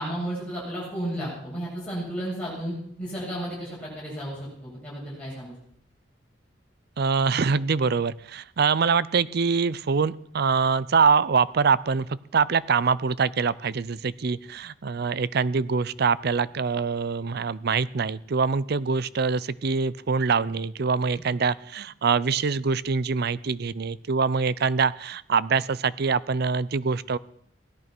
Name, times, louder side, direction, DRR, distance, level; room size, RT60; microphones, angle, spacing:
voice 1, 0.0-5.5 21.1-21.2, right 1 dB, 5° left, -7 dB, 7.0 m, -33 dB
voice 2, 7.0-27.2, right 5 dB, 60° right, 18 dB, 0.5 m, -24 dB
17.0 x 11.0 x 6.1 m, 0.68 s
head